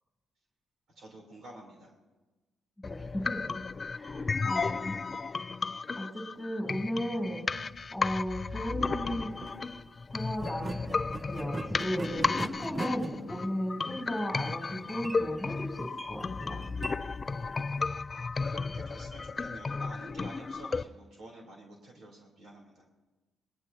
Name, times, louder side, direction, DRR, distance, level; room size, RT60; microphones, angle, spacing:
voice 1, 1.0-1.9 18.2-18.3 18.5-22.9, right 1 dB, 65° right, -1 dB, 3.4 m, -49 dB
sound 1, 2.8-20.8, left 4 dB, 30° left, 0.4 m, -34 dB
voice 2, 2.8-3.5 3.9-5.0 6.0-7.4 7.9-9.3 10.1-16.6, equal, 5° left, -1 dB, 2.9 m, -35 dB
sound 2, 9.3-9.6 10.4-17.9, right 2 dB, 25° right, 0.6 m, -41 dB
20.0 x 19.5 x 2.8 m, 1.2 s
cardioid pair, 90°, 0 cm